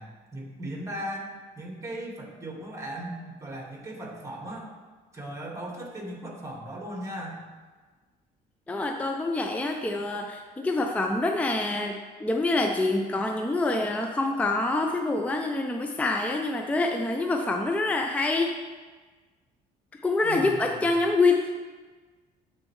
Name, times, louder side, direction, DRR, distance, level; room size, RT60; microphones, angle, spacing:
voice 1, 0.0-4.7 5.1-7.4 20.2-20.8, right 1 dB, 20° right, -1 dB, 1.8 m, -37 dB
voice 2, 8.7-18.6 19.9-21.5, left 2 dB, 10° left, 3 dB, 0.4 m, -26 dB
12.5 x 4.4 x 3.1 m, 1.4 s
cardioid pair, 110°, 17 cm